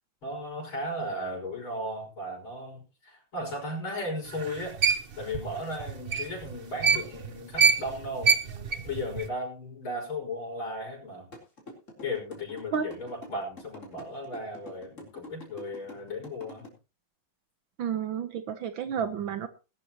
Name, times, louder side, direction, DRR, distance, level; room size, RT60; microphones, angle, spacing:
voice 1, 0.2-4.8 5.2-8.4 8.8-11.3 12.0-16.7 18.8-19.3, left 1 dB, 85° left, -2 dB, 6.7 m, -36 dB
sound 1, 4.3-7.3 7.5-9.3, right 5 dB, 40° right, 0.8 m, -25 dB
sound 2, 11.3-16.7, left 1 dB, 35° left, 4.2 m, -45 dB
voice 2, 17.8-19.5, right 7 dB, 75° right, 10 dB, 1.7 m, -31 dB
20.0 x 12.0 x 3.0 m, 0.31 s
omnidirectional pair, 2.2 m